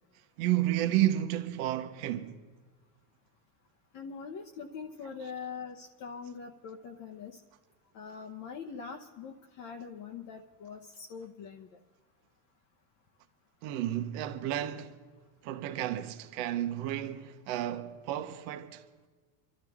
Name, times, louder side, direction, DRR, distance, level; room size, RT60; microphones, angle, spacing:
voice 1, 0.4-2.3 13.6-14.9 15.4-18.8, right 13 dB, 60° right, 1.1 m, -31 dB
voice 2, 3.9-7.3 7.9-11.7, left 6 dB, 40° left, 0.9 m, -43 dB
27.5 x 12.5 x 3.6 m
supercardioid pair, 140°, 50 cm